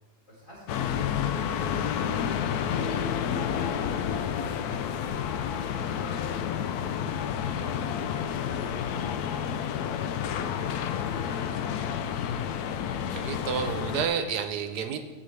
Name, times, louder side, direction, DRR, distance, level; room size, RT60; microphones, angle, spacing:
voice 1, 0.3-2.0 2.4-2.9 3.4-8.3 8.6-9.0 9.3-12.4, equal, 50° left, -8 dB, 3.8 m, -49 dB
sound 1, 0.7-14.1, left 8 dB, 75° left, 1.0 m, -30 dB
voice 2, 13.1-15.0, right 7 dB, 75° right, 7 dB, 1.3 m, -30 dB
17.5 x 5.9 x 3.3 m, 1.5 s
omnidirectional pair, 1.8 m